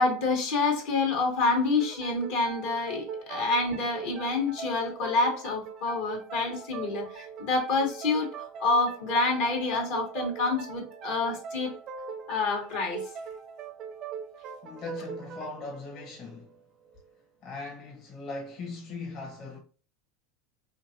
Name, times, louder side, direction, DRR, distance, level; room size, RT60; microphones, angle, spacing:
voice 1, 0.0-11.7 12.3-13.0, left 3 dB, 70° left, 1.6 m, -27 dB
sound 1, 1.8-17.1, right 6 dB, 45° right, 0.6 m, -41 dB
voice 2, 14.6-16.5 17.4-19.6, left 3 dB, 50° left, 1.3 m, -39 dB
3.7 x 2.8 x 2.8 m
hypercardioid pair, 90°, 0 cm